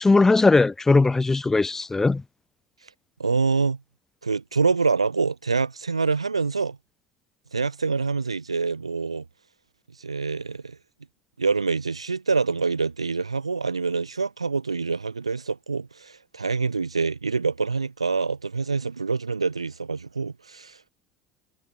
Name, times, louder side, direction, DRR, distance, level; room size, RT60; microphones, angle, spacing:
voice 1, 0.0-2.2, left 3 dB, 15° left, 0.6 m, -19 dB
voice 2, 3.2-3.8 4.2-6.8 7.5-9.2 10.0-10.8 11.4-20.9, right 4 dB, 85° right, 0.6 m, -26 dB
figure-of-eight pair, 65°, 3 cm